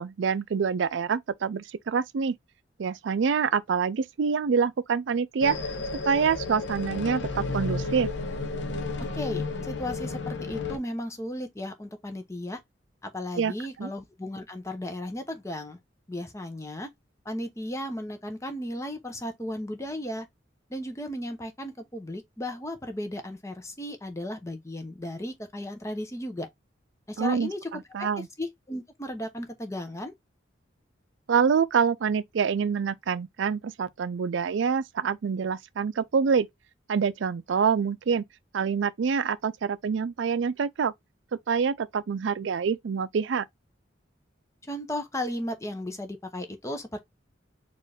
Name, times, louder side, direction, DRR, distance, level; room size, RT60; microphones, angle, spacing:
voice 1, 0.0-2.4 2.8-5.6 6.0-8.1 13.4-13.5 13.8-13.9 27.2-28.3 31.3-36.5 36.9-38.2 38.5-40.9 41.5-43.5, right 6 dB, 80° right, 0.4 m, -26 dB
sound 1, 5.4-10.8, left 3 dB, 70° left, 0.8 m, -32 dB
voice 2, 9.1-12.6 13.0-15.8 16.1-16.9 17.2-20.3 20.7-26.5 27.1-28.1 28.4-30.1 44.6-47.0, left 1 dB, 15° left, 0.8 m, -35 dB
4.4 x 2.5 x 3.3 m
head